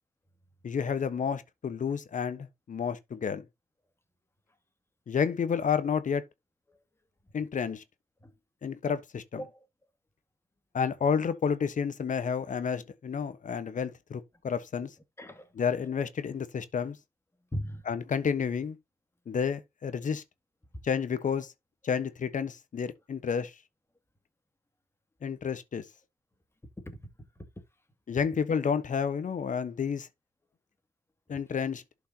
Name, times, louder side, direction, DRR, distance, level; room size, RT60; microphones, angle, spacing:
voice 1, 0.6-3.4 5.1-6.2 7.3-7.8 8.6-9.4 10.7-14.9 15.6-17.0 17.9-18.8 19.3-20.2 20.8-21.5 21.8-23.5 25.2-25.8 28.1-30.1 31.3-31.8, left 6 dB, 60° left, 1.2 m, -30 dB
voice 2, 9.3-9.7 15.2-15.5 17.5-17.8 20.7-20.8 26.8-27.1 27.4-27.6 31.3-31.4, equal, 15° left, 2.5 m, -39 dB
11.5 x 5.4 x 2.9 m
supercardioid pair, 50°, 15 cm